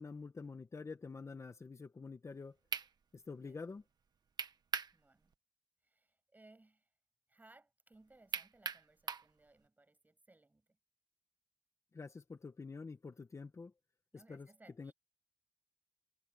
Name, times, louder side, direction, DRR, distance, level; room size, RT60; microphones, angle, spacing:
voice 1, 0.0-2.6 3.1-3.8 11.9-13.7 14.1-14.5 14.8-14.9, left 4 dB, 45° left, 1.2 m, -47 dB
sound 1, 2.3-2.4 2.7-2.9 4.4-4.9 5.3-5.4 8.3-9.3, right 6 dB, 90° right, 1.2 m, -39 dB
voice 2, 3.3-3.6 4.9-5.3 5.8-6.9 7.3-10.8 14.1-14.9, right 2 dB, 25° right, 7.6 m, -65 dB
wide cardioid pair, 110°, 7 cm